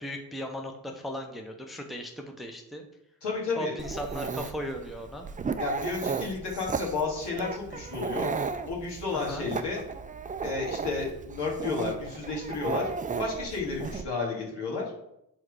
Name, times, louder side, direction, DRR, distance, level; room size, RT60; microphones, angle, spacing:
voice 1, 0.0-2.8 3.6-5.3 9.1-9.4, equal, ahead, 4 dB, 0.8 m, -37 dB
voice 2, 3.2-3.7 5.6-8.3 8.7-9.8 10.4-12.9 13.2-14.9, left 4 dB, 65° left, -3 dB, 2.3 m, -32 dB
Dog, 3.8-14.0, right 5 dB, 20° right, 0.4 m, -35 dB
4.6 x 4.4 x 4.8 m, 0.80 s
cardioid pair, 70°, 43 cm